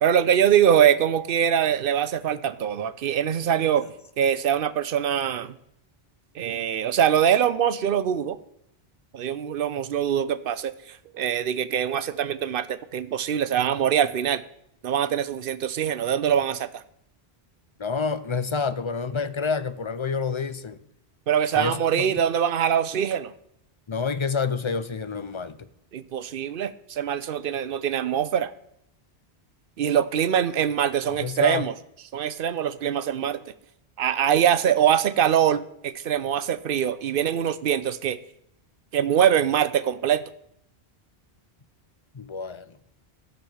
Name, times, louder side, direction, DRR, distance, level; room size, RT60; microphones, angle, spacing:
voice 1, 0.0-3.8 4.2-5.5 6.4-8.4 9.1-14.4 14.8-16.8 21.3-23.3 25.9-28.5 29.8-31.7 32.1-33.4 34.0-38.2 38.9-40.2, right 9 dB, 65° right, 15 dB, 0.8 m, -23 dB
voice 2, 17.8-20.8 21.5-22.1 23.9-25.7 31.1-31.6 42.1-42.7, left 5 dB, 35° left, 13 dB, 0.5 m, -28 dB
13.0 x 5.6 x 7.1 m, 0.75 s
omnidirectional pair, 1.0 m